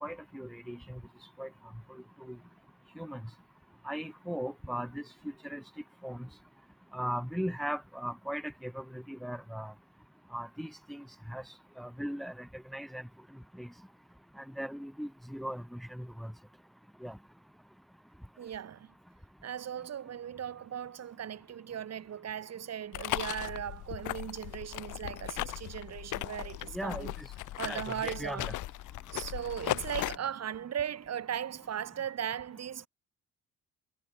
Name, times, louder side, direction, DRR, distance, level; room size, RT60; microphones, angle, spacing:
voice 1, 0.0-1.0 1.4-1.5 1.9-2.4 3.0-3.2 3.8-5.0 5.4-5.6 6.0-6.3 6.9-9.7 10.3-11.4 11.8-13.0 13.6-13.7 14.4-16.3 17.0-17.2 26.7-27.3 27.6-28.5, equal, ahead, 1.7 m, -38 dB
voice 2, 18.4-18.9 19.4-27.1 27.6-28.6 29.1-32.9, right 9 dB, 55° right, 2.5 m, -38 dB
sound 1, 22.9-30.2, left 16 dB, 90° left, 1.3 m, -37 dB
cardioid pair, 90°, 30 cm